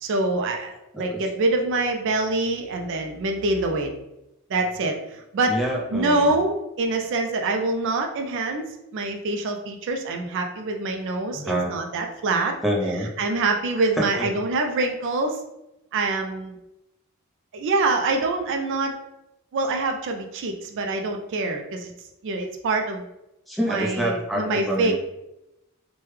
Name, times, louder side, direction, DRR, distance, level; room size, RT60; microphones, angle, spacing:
voice 1, 0.0-3.9 4.5-5.6 5.9-12.6 13.2-15.4 15.9-16.6 17.5-18.9 19.5-21.9 22.2-23.1 23.6-24.9, right 2 dB, 55° right, 4 dB, 0.3 m, -25 dB
voice 2, 5.5-6.3 11.3-11.7 12.6-13.1 14.0-14.3 23.5-24.9, equal, ahead, -2 dB, 0.5 m, -26 dB
3.2 x 2.1 x 3.2 m, 0.89 s
head